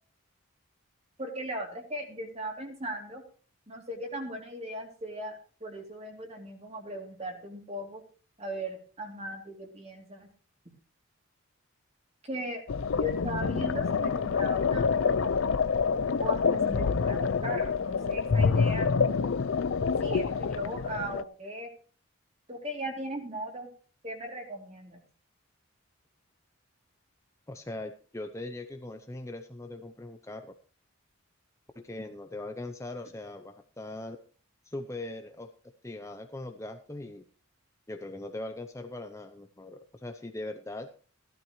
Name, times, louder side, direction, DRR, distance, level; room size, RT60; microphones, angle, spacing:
voice 1, 1.2-3.2 3.7-8.0 8.4-10.3 12.2-12.6 12.9-15.3 16.2-18.9 20.0-21.7 22.5-23.7 24.0-25.0, equal, 30° right, 2 dB, 2.9 m, -38 dB
sound 1, 12.7-21.2, left 5 dB, 65° left, 0.4 m, -27 dB
voice 2, 27.5-30.5 31.8-34.2 34.6-35.5 35.8-37.2 37.9-40.9, left 2 dB, 15° left, 6 dB, 0.6 m, -40 dB
15.5 x 12.0 x 3.1 m, 0.41 s
head